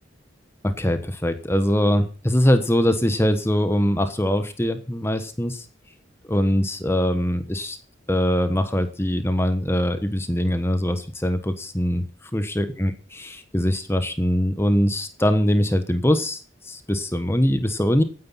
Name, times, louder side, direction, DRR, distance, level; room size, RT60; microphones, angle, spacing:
voice 1, 0.6-5.7 6.3-7.8 8.1-18.0, equal, 15° left, 9 dB, 1.3 m, -22 dB
16.5 x 9.8 x 5.8 m, 0.37 s
head